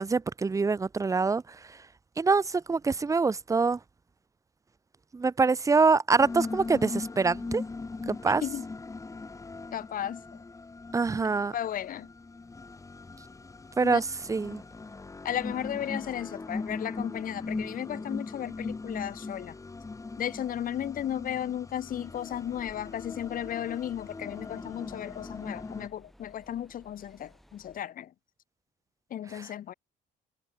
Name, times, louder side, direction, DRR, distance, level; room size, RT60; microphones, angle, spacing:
voice 1, 0.0-1.4 2.2-3.8 5.1-7.6 8.1-8.4 10.9-11.5 13.8-14.6, right 4 dB, 20° right, 0.7 m, -25 dB
sound 1, 6.2-25.9, left 3 dB, 20° left, 2.3 m, -39 dB
voice 2, 9.7-10.4 11.5-12.1 13.8-14.0 15.2-19.6 20.2-28.1 29.1-29.7, left 10 dB, 55° left, 2.8 m, -35 dB
sound 2, 21.8-27.8, equal, ahead, 6.2 m, -58 dB
cardioid pair, 110°, 17 cm